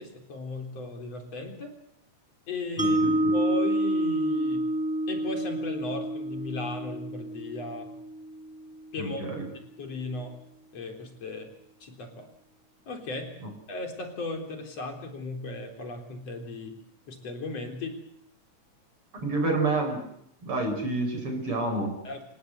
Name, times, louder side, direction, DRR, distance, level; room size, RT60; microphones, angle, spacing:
voice 1, 0.0-1.7 2.5-3.0 3.3-4.7 5.1-7.9 8.9-9.2 9.8-10.4 10.7-11.5 11.8-12.3 12.9-13.3 13.7-16.8 17.1-18.0 22.0-22.2, left 3 dB, 55° left, 4 dB, 4.8 m, -36 dB
Mallet percussion, 2.8-8.9, right 1 dB, 5° right, 1.1 m, -28 dB
voice 2, 2.8-3.3 9.0-9.4 19.1-20.0 20.4-21.9, right 2 dB, 45° right, 4 dB, 6.1 m, -29 dB
28.0 x 18.0 x 8.1 m, 0.73 s
omnidirectional pair, 3.4 m